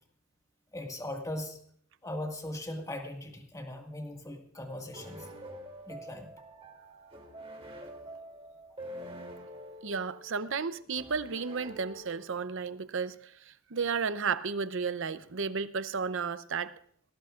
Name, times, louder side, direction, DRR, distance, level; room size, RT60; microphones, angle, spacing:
voice 1, 0.7-1.6 2.0-5.3 5.9-6.3 10.4-10.5, left 1 dB, 15° left, 1.9 m, -39 dB
sound 1, 4.9-12.6, equal, 30° right, 3.0 m, -47 dB
voice 2, 9.8-16.7, right 5 dB, 65° right, 0.7 m, -33 dB
19.0 x 16.0 x 2.5 m
head